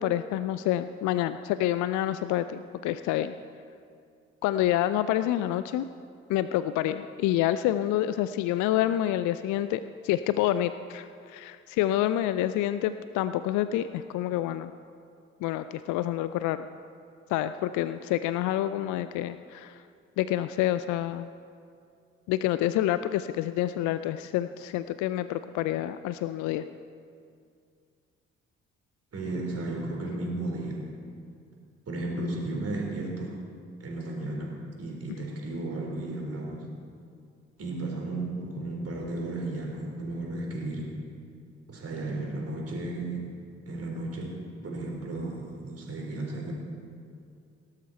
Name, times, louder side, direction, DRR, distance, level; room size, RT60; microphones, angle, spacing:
voice 1, 0.0-3.3 4.4-5.9 6.3-14.7 15.4-16.7 17.3-19.8 20.2-21.3 22.3-26.6, left 13 dB, 60° left, 12 dB, 0.5 m, -28 dB
voice 2, 29.1-30.8 31.9-33.3 33.8-36.7 37.6-40.9 41.7-43.2 43.7-46.5, right 2 dB, 45° right, -1 dB, 4.1 m, -34 dB
18.0 x 12.5 x 4.3 m, 2.3 s
figure-of-eight pair, 40°, 34 cm